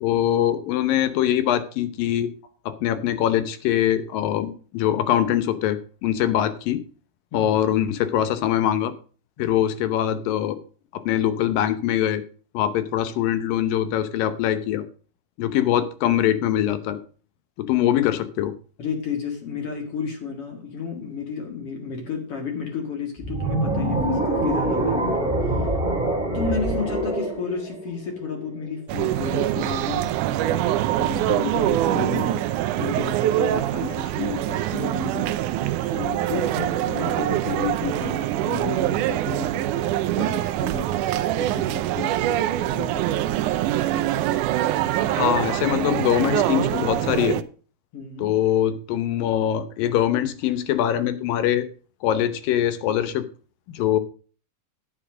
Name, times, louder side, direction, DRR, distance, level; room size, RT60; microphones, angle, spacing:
voice 1, 0.0-2.3 2.7-6.8 7.3-8.9 9.4-10.6 10.9-12.2 12.5-14.8 15.4-17.0 17.6-18.6 45.1-47.4 48.2-51.7 52.0-53.3 53.7-54.0, left 11 dB, 85° left, 12 dB, 2.7 m, -23 dB
voice 2, 18.8-25.7 26.3-30.1 30.4-35.3 35.8-41.0 41.4-43.4 47.9-48.3, left 5 dB, 45° left, 3 dB, 2.6 m, -32 dB
sound 1, 23.2-28.4, right 2 dB, ahead, 2.0 m, -25 dB
sound 2, 28.9-47.4, right 13 dB, 75° right, 2.0 m, -24 dB
9.9 x 9.1 x 5.0 m, 0.39 s
omnidirectional pair, 3.9 m